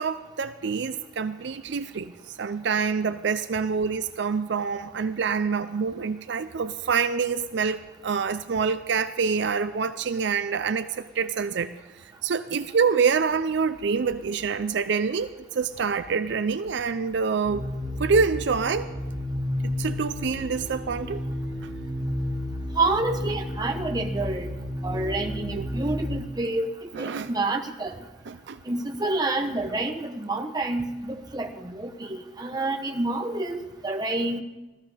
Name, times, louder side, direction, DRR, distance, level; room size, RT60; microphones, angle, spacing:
voice 1, 0.0-11.7 12.2-17.7 18.0-18.9 19.6-21.2 21.6-21.7 25.5-25.7 26.9-27.3 28.3-28.6, right 5 dB, 65° right, 11 dB, 0.5 m, -26 dB
sound 1, 17.4-26.1, left 1 dB, 15° left, 3.2 m, -32 dB
voice 2, 22.7-24.5 24.8-26.7 27.0-27.9 28.7-34.4, right 2 dB, 20° right, 2 dB, 1.1 m, -28 dB
15.5 x 14.0 x 5.0 m, 1.1 s
head